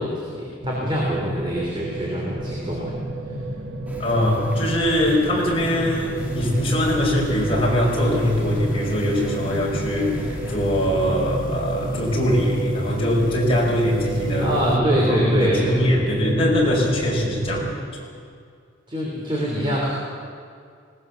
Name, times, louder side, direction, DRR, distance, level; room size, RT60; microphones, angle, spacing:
voice 1, 0.0-2.9 14.4-15.8 18.9-19.9, equal, 25° right, -4 dB, 3.3 m, -25 dB
sound 1, 0.6-17.7, right 2 dB, 90° right, 1.6 m, -30 dB
sound 2, 3.9-10.9, equal, 10° right, 1.7 m, -39 dB
voice 2, 4.0-17.8, left 1 dB, 30° left, -3 dB, 5.1 m, -22 dB
sound 3, 6.2-14.8, left 1 dB, 45° left, 1.3 m, -37 dB
20.0 x 19.0 x 7.0 m, 2.2 s
head